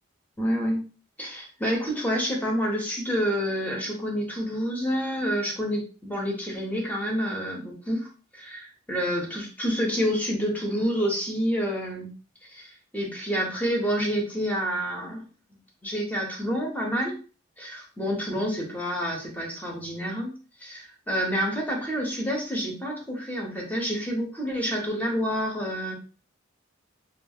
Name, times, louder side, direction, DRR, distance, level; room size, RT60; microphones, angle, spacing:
voice 1, 0.4-0.8 1.2-12.1 12.4-15.2 15.8-17.2 17.6-20.3 20.6-25.9, equal, 10° left, -1 dB, 0.7 m, -28 dB
2.6 x 2.3 x 2.7 m, 0.37 s
head